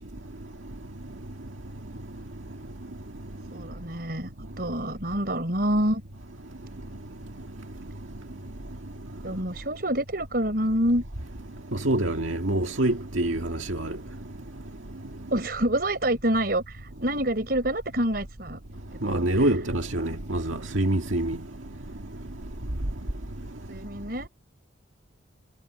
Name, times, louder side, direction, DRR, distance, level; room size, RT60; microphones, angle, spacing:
voice 1, 3.5-4.3 4.6-6.0 9.2-11.0 15.3-18.6 19.0-19.5 20.0-20.2 23.7-24.3, right 1 dB, 50° right, 4.7 m, -27 dB
voice 2, 11.8-14.0 19.0-21.4, right 1 dB, 85° right, 2.0 m, -25 dB
head